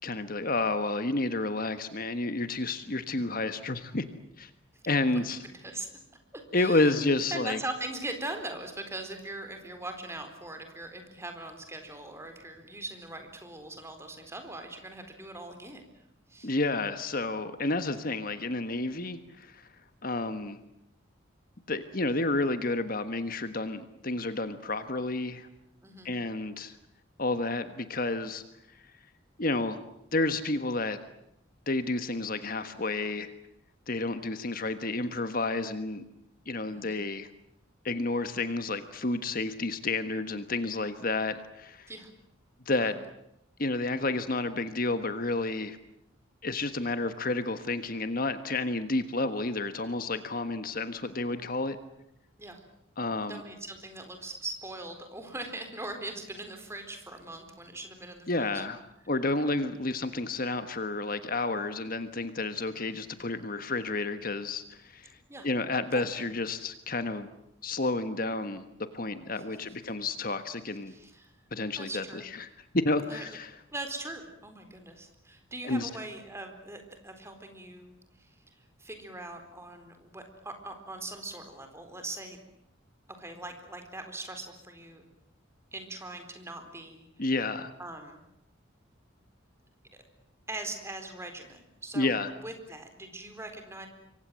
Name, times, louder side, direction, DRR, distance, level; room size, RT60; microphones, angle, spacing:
voice 1, 0.0-4.1 4.4-4.5 4.9-5.4 6.5-7.6 16.4-19.7 20.0-20.6 21.7-25.5 26.0-26.8 27.2-28.4 28.7-28.9 29.4-29.8 30.1-31.0 31.7-33.3 33.9-36.0 36.4-37.3 37.8-41.9 42.6-43.0 43.6-45.8 46.4-51.8 53.0-53.4 58.3-58.8 59.1-65.2 65.4-67.3 67.6-68.7 68.9-70.9 71.5-72.5 72.7-73.5 75.6-75.9 87.2-87.7 91.9-92.3, left 2 dB, 45° left, 10 dB, 1.4 m, -30 dB
voice 2, 5.1-5.9 6.3-7.0 7.3-15.9 16.3-16.5 25.8-26.1 36.7-37.0 41.9-42.1 42.8-42.9 52.4-52.6 53.3-58.6 59.4-59.5 65.3-65.5 65.9-66.3 69.3-69.4 70.9-71.3 71.8-72.2 73.1-73.4 73.7-82.4 83.2-85.1 85.7-87.1 87.8-88.3 90.5-92.1 92.4-93.9, right 2 dB, 15° right, 6 dB, 4.2 m, -41 dB
27.0 x 24.0 x 7.7 m, 0.82 s
head